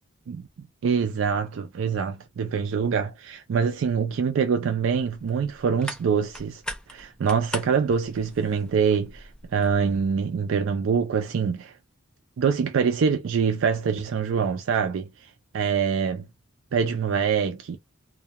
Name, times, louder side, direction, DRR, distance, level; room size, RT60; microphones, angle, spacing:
voice 1, 0.3-6.6 6.9-11.8 12.4-16.3 16.7-17.8, right 6 dB, 65° right, 0.3 m, -25 dB
sound 1, 4.9-10.1, equal, 5° left, 0.4 m, -41 dB
2.2 x 2.2 x 2.7 m
head